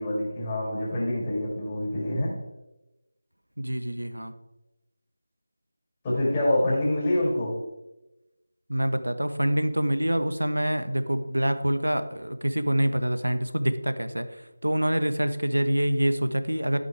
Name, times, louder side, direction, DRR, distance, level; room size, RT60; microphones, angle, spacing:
voice 1, 0.0-2.4 6.0-7.6, left 1 dB, 20° left, -8 dB, 4.8 m, -26 dB
voice 2, 3.6-4.3 8.7-16.8, right 1 dB, 80° right, 10 dB, 1.4 m, -26 dB
14.0 x 8.4 x 4.8 m, 0.98 s
figure-of-eight pair, 165°, 0 cm